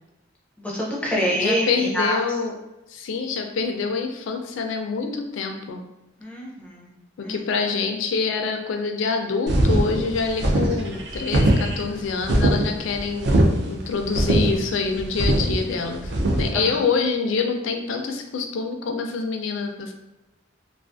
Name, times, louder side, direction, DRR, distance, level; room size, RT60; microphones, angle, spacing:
voice 1, 0.6-2.2 6.2-6.9 7.2-7.4 16.5-16.8, equal, 5° left, -4 dB, 0.4 m, -26 dB
voice 2, 1.1-2.5 2.9-5.8 7.2-13.4 13.7-19.9, left 4 dB, 75° left, 4 dB, 0.4 m, -26 dB
sound 1, 9.5-16.5, right 1 dB, 55° right, 0.4 m, -21 dB
2.4 x 2.3 x 2.4 m, 0.99 s
head